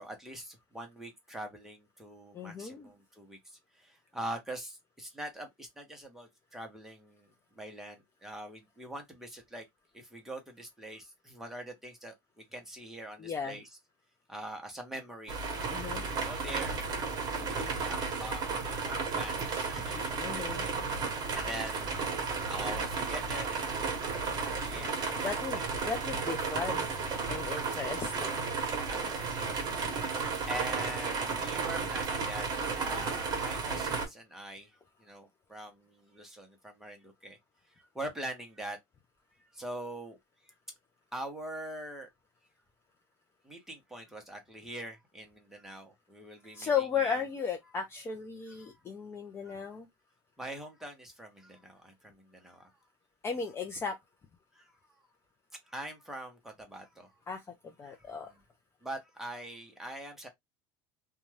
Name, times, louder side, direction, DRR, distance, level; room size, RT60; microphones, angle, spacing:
voice 1, 0.0-9.7 9.9-13.7 14.3-15.4 16.2-16.8 17.4-20.0 20.6-22.0 22.5-23.9 24.1-25.2 27.6-27.8 28.8-29.9 30.2-32.5 32.8-34.7 35.0-37.4 37.7-38.8 39.4-40.2 40.4-40.5 41.1-42.1 43.4-47.2 48.5-48.8 49.4-49.7 50.4-52.7 54.5-54.7 55.6-57.1 57.8-58.4 58.8-60.3, right 1 dB, 5° right, 0.9 m, -44 dB
voice 2, 2.3-2.9 13.2-13.6 15.7-16.0 19.5-19.7 20.2-20.7 24.7-28.4 46.5-49.9 53.2-54.0 57.3-58.3, left 6 dB, 20° left, 0.5 m, -36 dB
sound 1, 15.3-34.1, right 4 dB, 35° right, 1.1 m, -33 dB
2.5 x 2.3 x 3.1 m
supercardioid pair, 135°, 12 cm